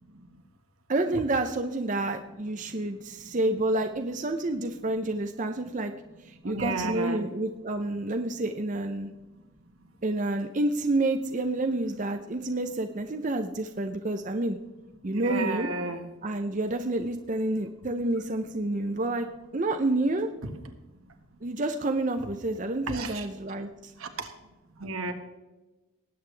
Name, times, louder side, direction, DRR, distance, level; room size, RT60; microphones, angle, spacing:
voice 1, 0.9-5.9 6.2-9.1 10.0-14.6 15.0-15.7 16.2-19.3 19.5-20.3 21.4-23.9, right 2 dB, 35° right, 6 dB, 0.6 m, -29 dB
voice 2, 6.4-7.2 15.1-16.0 22.9-23.3 24.0-24.3 24.8-25.1, right 3 dB, 80° right, 5 dB, 1.6 m, -32 dB
19.5 x 8.8 x 3.3 m, 1.1 s
head